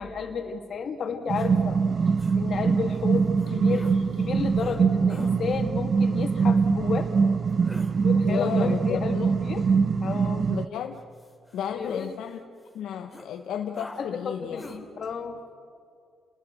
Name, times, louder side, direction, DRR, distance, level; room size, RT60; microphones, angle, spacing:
voice 1, 0.0-1.8 2.3-7.1 8.0-9.7 10.0-10.5 11.7-12.1 14.0-15.4, left 5 dB, 55° left, 5 dB, 2.5 m, -32 dB
sound 1, 1.3-1.5 2.2-2.4 3.4-4.0 4.6-4.8 5.1-5.3 7.5-7.9 10.9-12.3 12.6-12.7 13.1-13.3 13.7-14.0 14.6-14.8, left 1 dB, 5° left, 3.0 m, -45 dB
sound 2, 1.3-10.7, right 5 dB, 45° right, 0.8 m, -23 dB
voice 2, 8.2-9.3 10.5-11.0 11.5-12.4 12.7-14.6, left 9 dB, 80° left, 4 dB, 0.9 m, -33 dB
30.0 x 20.0 x 6.3 m, 2.3 s
cardioid pair, 90°, 0 cm